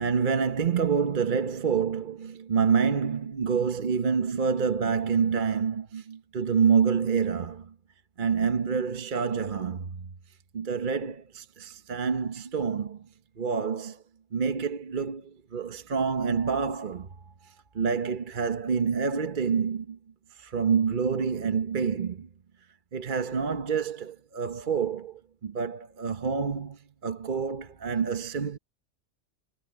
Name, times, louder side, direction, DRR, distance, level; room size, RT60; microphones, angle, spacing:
voice 1, 0.0-7.7 8.2-10.1 10.5-13.0 13.4-14.0 14.3-17.1 17.7-20.0 20.4-22.3 22.9-28.6, right 6 dB, 45° right, 1.1 m, -27 dB
omnidirectional pair, 1.2 m